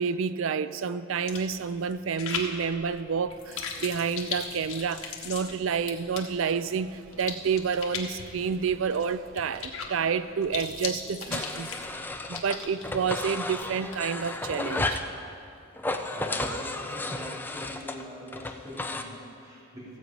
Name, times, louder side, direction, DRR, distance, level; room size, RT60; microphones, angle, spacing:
voice 1, 0.0-12.0 12.3-15.0, right 6 dB, 65° right, 14 dB, 0.4 m, -29 dB
sound 1, 1.2-14.3, left 6 dB, 85° left, 1.3 m, -39 dB
sound 2, 11.3-12.6 12.8-15.1 15.8-19.0, left 2 dB, 10° left, 0.4 m, -33 dB
voice 2, 16.1-20.0, equal, 15° right, -8 dB, 3.2 m, -44 dB
15.0 x 7.8 x 5.3 m, 2.5 s
head